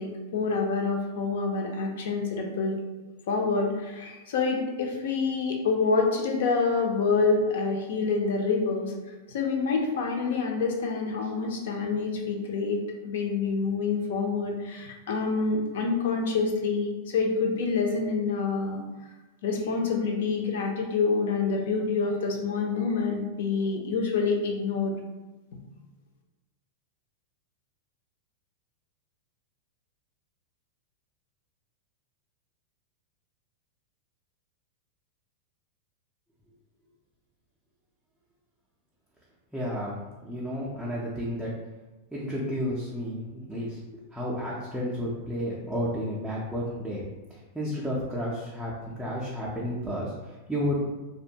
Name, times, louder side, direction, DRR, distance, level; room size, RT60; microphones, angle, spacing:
voice 1, 0.0-2.8 3.3-8.9 9.3-18.8 19.4-25.0 25.5-25.6, left 4 dB, 70° left, 2 dB, 0.5 m, -27 dB
voice 2, 39.5-39.9 40.2-41.5 42.1-43.8 44.1-47.0 47.5-50.9, equal, ahead, -8 dB, 0.4 m, -31 dB
2.5 x 2.2 x 2.7 m, 1.1 s
supercardioid pair, 165°, 0 cm